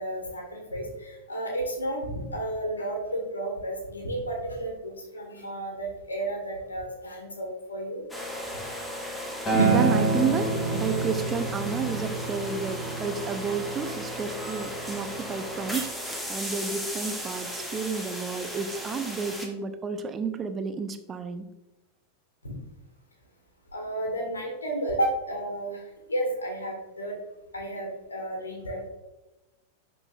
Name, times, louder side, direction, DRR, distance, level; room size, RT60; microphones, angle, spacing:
voice 1, 0.0-2.0 2.3-8.0 22.4-22.6 23.7-25.8 26.1-27.2 27.5-28.9, right 1 dB, 75° left, 1 dB, 1.7 m, -32 dB
sound 1, 8.1-19.5, equal, 5° left, 1.1 m, -36 dB
Acoustic guitar, 9.5-13.8 14.6-14.7, right 1 dB, 20° left, 2.0 m, -30 dB
voice 2, 9.5-21.5, right 5 dB, 20° right, 8 dB, 0.5 m, -31 dB
sound 2, 9.5-15.8, right 6 dB, 70° right, 0.4 m, -30 dB
10.5 x 4.0 x 2.4 m, 1.0 s
figure-of-eight pair, 90°, 0 cm